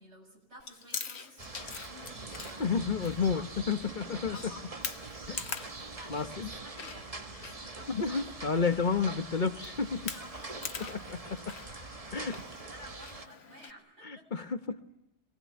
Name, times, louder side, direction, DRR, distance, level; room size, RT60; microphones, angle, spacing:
voice 1, 0.0-8.3 10.1-11.0 12.0-14.3, equal, 80° right, 0 dB, 8.1 m, -53 dB
Chewing mastication, 0.6-13.7, left 6 dB, 70° left, 1.4 m, -45 dB
sound 1, 1.4-13.3, right 3 dB, 35° right, 1.3 m, -44 dB
voice 2, 2.6-4.4 5.3-5.4 6.1-6.5 7.9-10.1 11.5-11.6 12.1-12.4 14.0-14.8, left 5 dB, 45° left, 9 dB, 1.2 m, -30 dB
25.0 x 19.5 x 9.5 m, 0.86 s
omnidirectional pair, 1.2 m